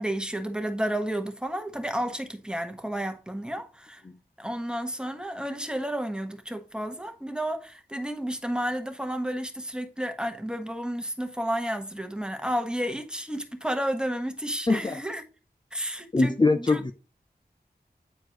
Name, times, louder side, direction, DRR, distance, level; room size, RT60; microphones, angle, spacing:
voice 1, 0.0-4.0 4.4-15.2 15.7-16.9, right 1 dB, 5° right, 1.3 m, -31 dB
voice 2, 14.7-15.0 16.1-16.9, left 3 dB, 25° left, 0.5 m, -23 dB
9.5 x 4.4 x 3.1 m
cardioid pair, 40°, 17 cm